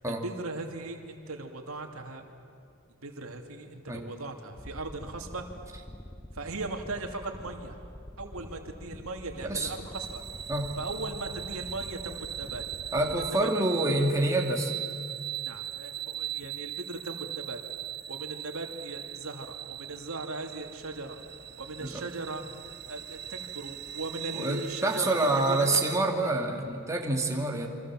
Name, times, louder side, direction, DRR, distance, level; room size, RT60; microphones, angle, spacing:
voice 1, 0.1-2.3 3.0-5.5 6.3-7.8 8.2-10.2 10.8-12.6 13.1-13.5 15.4-17.6 18.1-21.2 21.6-25.7, right 2 dB, 90° right, 4 dB, 2.7 m, -38 dB
sound 1, 4.6-13.3, equal, 10° left, 0.8 m, -46 dB
sound 2, 9.9-26.0, right 11 dB, 50° right, 1.3 m, -40 dB
voice 2, 12.9-14.7 21.8-22.0 24.3-27.7, right 2 dB, 15° right, 1 dB, 2.5 m, -27 dB
28.0 x 25.0 x 7.6 m, 2.5 s
head